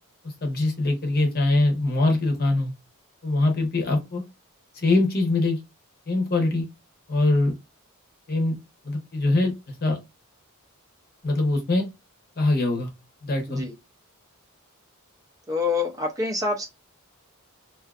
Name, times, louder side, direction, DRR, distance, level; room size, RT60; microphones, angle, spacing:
voice 1, 0.4-2.7 3.2-4.2 4.7-5.6 6.1-6.6 7.1-7.5 8.3-8.6 8.8-9.5 9.8-10.0 11.2-11.9 12.4-12.9 13.2-13.6, left 2 dB, 45° left, 0.8 m, -22 dB
voice 2, 15.5-16.6, left 4 dB, 15° right, 0.5 m, -26 dB
2.5 x 2.4 x 2.3 m
head